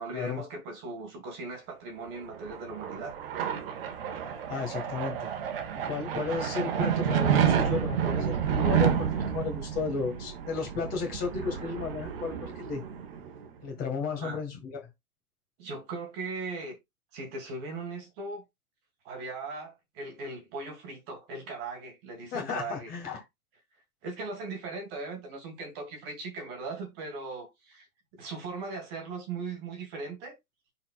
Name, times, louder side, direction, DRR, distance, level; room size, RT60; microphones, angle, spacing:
voice 1, 0.0-3.1 14.1-14.4 15.6-16.8 17.1-18.4 19.0-22.9 24.0-27.9 28.1-30.4, right 3 dB, 25° right, 1.8 m, -38 dB
sound 1, 2.2-13.5, right 8 dB, 40° right, 1.3 m, -30 dB
voice 2, 4.5-5.3 5.9-12.8 13.6-14.8 22.3-23.2, left 5 dB, 20° left, 1.7 m, -34 dB
10.5 x 4.3 x 2.4 m
hypercardioid pair, 160°, 44 cm